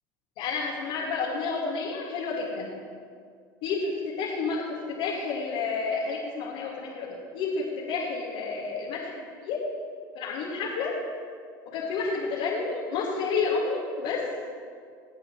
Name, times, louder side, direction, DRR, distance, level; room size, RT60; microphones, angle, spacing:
voice 1, 0.4-2.7 3.6-4.6 4.9-7.1 7.3-9.1 9.4-9.6 10.1-10.9 11.7-14.2, left 4 dB, 65° left, -6 dB, 2.4 m, -30 dB
23.0 x 8.5 x 3.3 m, 2.1 s
hypercardioid pair, 80°, 11 cm